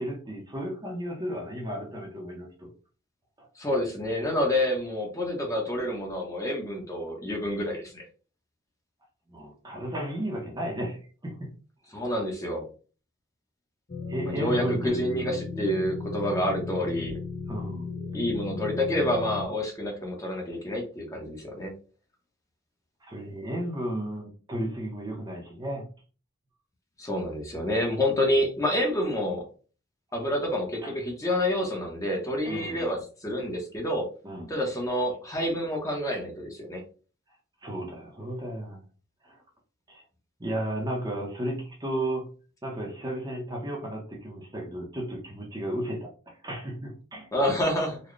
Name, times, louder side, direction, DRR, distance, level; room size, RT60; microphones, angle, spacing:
voice 1, 0.0-2.7 3.4-3.5 9.3-11.5 14.1-14.9 17.5-17.9 23.0-25.9 30.8-30.9 32.4-33.0 34.2-34.5 37.6-38.8 39.2-39.4 39.9-40.0 40.4-42.3 42.6-47.3, right 1 dB, 20° right, 0 dB, 0.7 m, -34 dB
voice 2, 3.6-8.0 11.9-12.7 14.2-17.2 18.1-21.7 27.0-29.4 30.1-34.0 34.5-36.8 47.3-48.0, left 1 dB, 15° left, 0 dB, 0.8 m, -28 dB
sound 1, 13.9-19.5, left 4 dB, 40° left, 0.5 m, -35 dB
4.0 x 2.2 x 3.2 m, 0.38 s
head